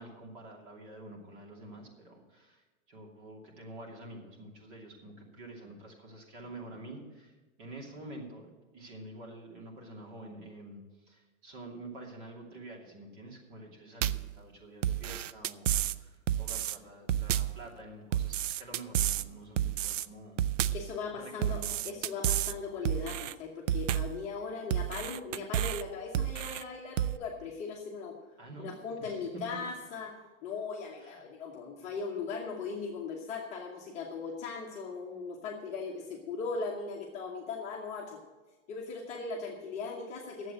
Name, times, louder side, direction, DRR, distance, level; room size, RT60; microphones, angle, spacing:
voice 1, 0.0-20.5 21.1-22.1 28.4-28.7 29.0-29.3 29.5-29.6 31.0-31.2, right 1 dB, 40° right, 0 dB, 2.7 m, -48 dB
sound 1, 14.0-14.3 14.8-16.0 16.3-16.8 17.1-17.6 18.1-19.3 19.6-20.1 20.4-20.9 21.4-22.5 22.8-23.3 23.7-24.2 24.7-25.8 26.1-26.6 27.0-27.2, right 11 dB, 70° right, 0.5 m, -30 dB
voice 2, 20.7-28.2 28.6-30.2 30.4-38.2 38.7-40.5, left 4 dB, 20° left, -3 dB, 1.0 m, -39 dB
10.5 x 7.8 x 7.7 m, 1.2 s
supercardioid pair, 175°, 39 cm